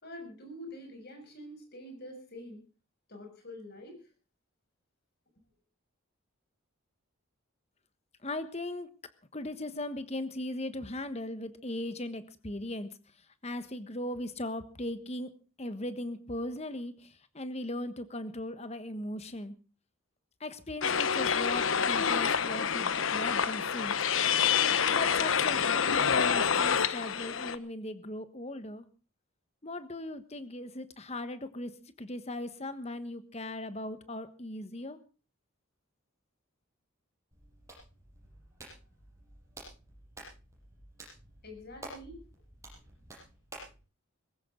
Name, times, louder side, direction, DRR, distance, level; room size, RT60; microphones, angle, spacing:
voice 1, 0.0-2.6 3.1-4.1 41.4-42.2, left 1 dB, 45° left, 5 dB, 6.6 m, -46 dB
voice 2, 8.2-8.9 9.3-12.9 13.4-15.3 15.6-19.6 20.4-24.0 24.9-28.8 29.6-35.0, left 1 dB, 30° left, 11 dB, 1.3 m, -38 dB
sound 1, 20.8-27.6, left 7 dB, 65° left, 0.9 m, -27 dB
Hands, 37.3-43.8, right 1 dB, 15° right, 7.2 m, -51 dB
20.0 x 16.5 x 3.8 m, 0.34 s
head